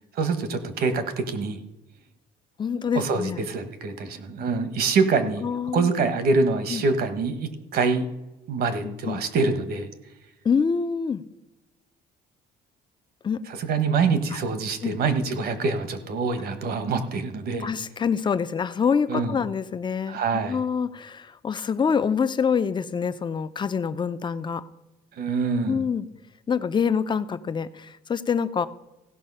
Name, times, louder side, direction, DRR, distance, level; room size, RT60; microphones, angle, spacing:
voice 1, 0.2-1.6 2.9-5.4 5.7-8.0 8.5-9.9 13.6-17.7 19.1-19.4 20.1-20.6 25.2-25.8, right 4 dB, 65° right, 10 dB, 1.4 m, -25 dB
voice 2, 2.6-3.5 5.4-6.1 6.7-6.9 8.8-9.2 10.4-11.2 13.2-13.5 14.8-15.0 17.6-24.6 25.7-26.1 26.5-28.7, left 6 dB, 30° left, 13 dB, 0.6 m, -26 dB
16.0 x 5.7 x 5.6 m, 0.99 s
cardioid pair, 110°, 17 cm